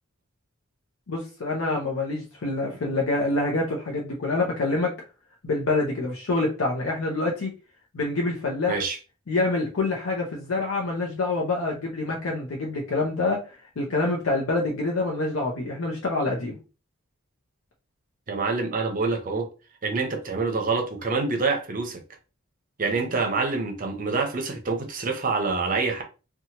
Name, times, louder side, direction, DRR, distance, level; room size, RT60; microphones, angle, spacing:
voice 1, 1.1-4.9 5.4-7.5 7.9-8.8 9.3-13.4 13.8-16.6, left 2 dB, 85° left, 0.6 m, -26 dB
voice 2, 18.3-19.5 19.8-22.0 22.8-26.0, right 4 dB, 40° right, 0.6 m, -26 dB
2.8 x 2.2 x 2.8 m
head